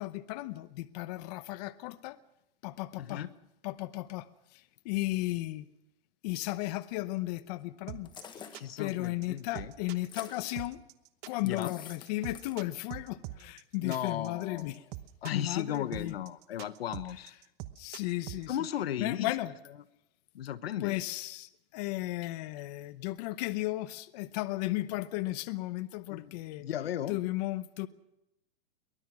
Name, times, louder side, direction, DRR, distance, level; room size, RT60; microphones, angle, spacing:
voice 1, 0.0-2.2 2.6-3.3 3.6-5.7 6.2-8.5 8.8-10.8 11.3-14.8 15.3-16.1 17.8-18.6 19.0-19.5 20.8-26.7 27.1-27.9, left 18 dB, 45° left, 0.9 m, -35 dB
voice 2, 3.0-3.3 8.5-9.7 11.4-11.7 13.8-14.7 15.2-17.3 18.5-19.3 20.3-21.0 26.1-26.3 26.6-27.2, left 10 dB, 85° left, 1.2 m, -35 dB
sound 1, 7.9-18.5, right 15 dB, 35° right, 1.1 m, -43 dB
sound 2, 8.1-8.7 10.0-10.7 11.5-12.1 12.3-12.6, left 7 dB, 15° left, 1.4 m, -48 dB
23.5 x 19.5 x 6.1 m
supercardioid pair, 155°, 30 cm